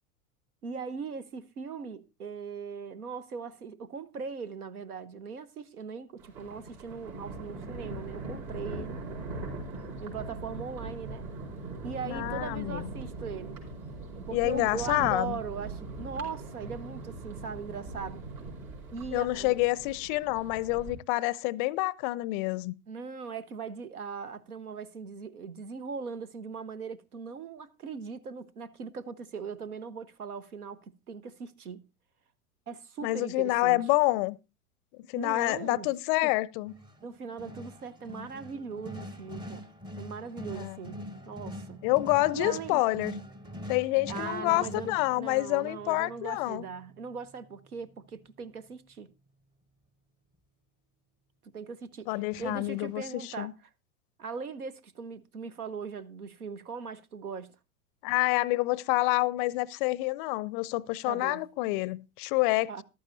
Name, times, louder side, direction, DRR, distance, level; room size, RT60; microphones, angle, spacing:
voice 1, 0.6-9.0 10.0-11.2 11.8-13.6 14.1-18.3 18.9-19.6 22.9-31.8 32.7-33.8 35.2-35.9 36.2-36.3 37.0-39.7 40.0-41.8 42.3-42.8 44.1-49.1 51.4-53.5 54.2-57.5 61.1-61.4 62.7-62.8, right 5 dB, 80° right, 0.9 m, -40 dB
Thunder, 6.2-20.9, right 3 dB, 65° right, 4.7 m, -41 dB
voice 2, 12.0-12.9 14.3-15.4 19.1-22.7 33.0-34.4 35.1-36.7 40.5-40.8 41.8-43.1 43.7-46.6 52.1-53.5 58.0-62.7, left 20 dB, 40° left, 0.5 m, -28 dB
sound 1, 36.7-47.5 52.3-53.0, equal, 10° right, 0.7 m, -44 dB
14.0 x 12.0 x 2.6 m
figure-of-eight pair, 90°, 43 cm